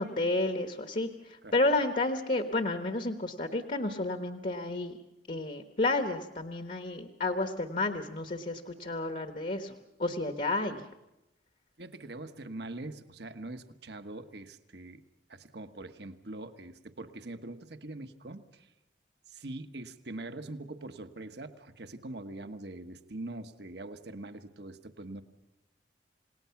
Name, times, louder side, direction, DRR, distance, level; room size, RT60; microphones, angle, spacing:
voice 1, 0.0-5.0 5.3-9.7 10.0-10.8, left 2 dB, 45° left, 7 dB, 1.3 m, -31 dB
voice 2, 11.8-15.0 15.3-18.7 19.3-25.2, right 2 dB, 65° right, 8 dB, 1.3 m, -43 dB
28.5 x 18.5 x 5.9 m, 0.92 s
head